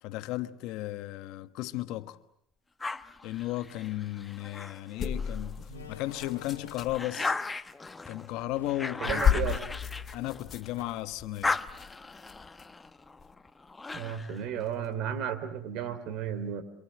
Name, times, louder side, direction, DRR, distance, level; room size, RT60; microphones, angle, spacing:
voice 1, 0.0-2.2 3.2-5.6 5.9-7.4 8.1-9.5 10.1-11.6, left 16 dB, 65° left, 1.3 m, -35 dB
sound 1, 2.8-5.5 6.0-10.8 11.1-14.4, left 3 dB, 15° left, 1.1 m, -37 dB
Slam, 4.6-4.8 5.6-7.2 8.2-9.7 10.0-10.1 10.8-11.4, left 4 dB, 90° left, 1.6 m, -48 dB
sound 2, 5.0-7.0 8.5-8.7 9.0-12.7 13.2-13.3, left 8 dB, 40° left, 2.0 m, -33 dB
voice 2, 9.0-9.7 13.9-16.6, right 8 dB, 60° right, 3.4 m, -34 dB
27.5 x 27.0 x 7.7 m
hypercardioid pair, 70°, 0 cm